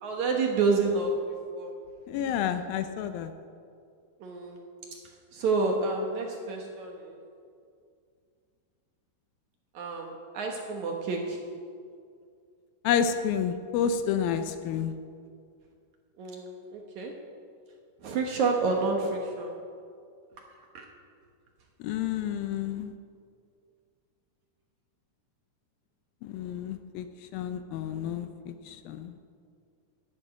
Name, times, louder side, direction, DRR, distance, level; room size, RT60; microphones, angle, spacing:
voice 1, 0.0-1.2 1.6-1.7 4.2-4.6 5.3-7.2 9.7-11.4 16.2-17.2 18.0-19.6 20.4-20.5 20.7-20.9, right 3 dB, 65° right, 1 dB, 2.1 m, -29 dB
voice 2, 2.1-3.3 12.8-14.9 21.8-22.9 26.2-27.1 27.3-29.2, left 8 dB, 80° left, 9 dB, 2.3 m, -30 dB
11.0 x 11.0 x 9.1 m, 2.3 s
omnidirectional pair, 4.5 m